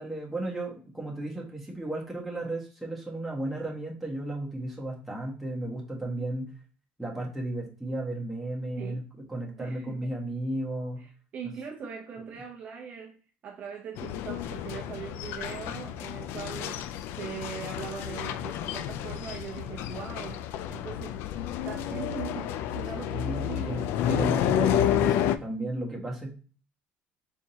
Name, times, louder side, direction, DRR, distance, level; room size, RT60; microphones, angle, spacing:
voice 1, 0.0-6.5 7.0-9.0 9.3-11.0 21.9-22.1 23.1-23.8 24.1-26.4, right 1 dB, ahead, 1.3 m, -34 dB
voice 2, 9.6-10.1 11.0-13.2 13.4-21.3 21.6-23.9, right 7 dB, 40° right, 0.7 m, -41 dB
sound 1, 14.0-25.4, left 10 dB, 70° left, 0.3 m, -30 dB
4.4 x 3.6 x 2.8 m
cardioid pair, 155°, 4 cm